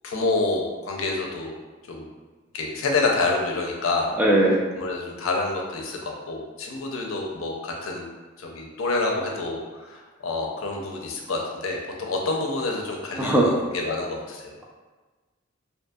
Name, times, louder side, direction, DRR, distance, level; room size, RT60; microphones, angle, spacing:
voice 1, 0.0-1.5 1.9-2.0 2.5-4.1 4.8-8.1 8.4-14.5, left 3 dB, 80° left, 0 dB, 0.5 m, -28 dB
voice 2, 4.2-4.6 13.2-13.5, right 1 dB, 10° right, -3 dB, 0.3 m, -18 dB
2.6 x 2.6 x 2.3 m, 1.3 s
head